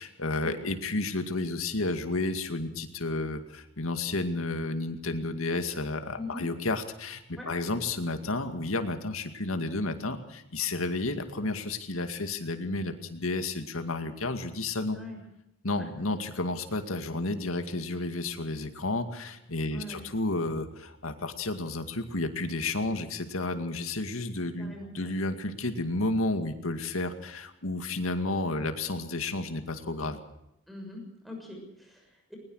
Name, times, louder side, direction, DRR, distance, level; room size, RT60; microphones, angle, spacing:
voice 1, 0.0-15.0 15.6-30.2, left 2 dB, 85° left, 8 dB, 2.2 m, -31 dB
voice 2, 6.1-6.4 7.3-7.5 14.9-15.2 15.8-15.9 19.7-20.0 24.6-25.1 30.7-32.4, left 2 dB, ahead, 0 dB, 6.6 m, -42 dB
21.0 x 20.0 x 6.4 m, 0.85 s
head